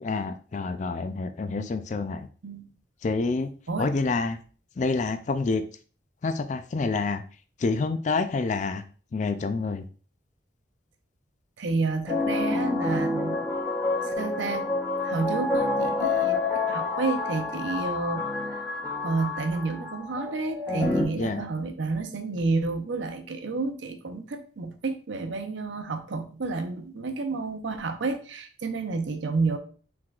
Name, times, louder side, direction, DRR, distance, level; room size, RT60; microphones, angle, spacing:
voice 1, 0.0-2.3 3.0-3.5 3.8-4.4 4.8-5.6 6.2-7.2 7.6-8.8 9.1-9.8 21.2-21.4, left 3 dB, 40° left, 9 dB, 0.3 m, -27 dB
voice 2, 11.6-13.6 14.0-14.7 15.0-16.4 16.7-18.2 19.0-29.6, right 3 dB, 70° right, 7 dB, 0.6 m, -30 dB
sound 1, 12.1-21.0, left 3 dB, 15° left, 1.3 m, -28 dB
4.7 x 3.7 x 2.3 m, 0.40 s
head